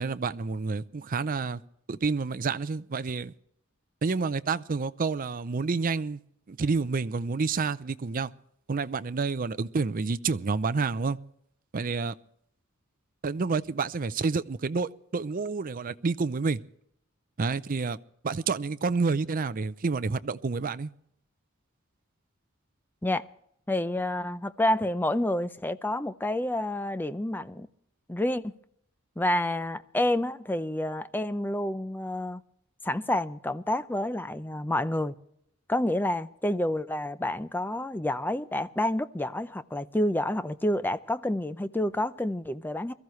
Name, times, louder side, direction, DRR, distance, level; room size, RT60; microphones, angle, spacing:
voice 1, 0.0-1.6 1.9-3.3 4.0-6.2 6.5-8.3 8.7-11.2 11.7-12.2 13.2-16.6 17.4-18.0 18.2-20.9, right 4 dB, 40° right, 0.5 m, -29 dB
voice 2, 23.7-27.7 28.1-28.4 29.2-32.4 32.8-35.2 35.7-42.9, left 1 dB, 10° left, 0.5 m, -29 dB
22.5 x 14.0 x 3.1 m
head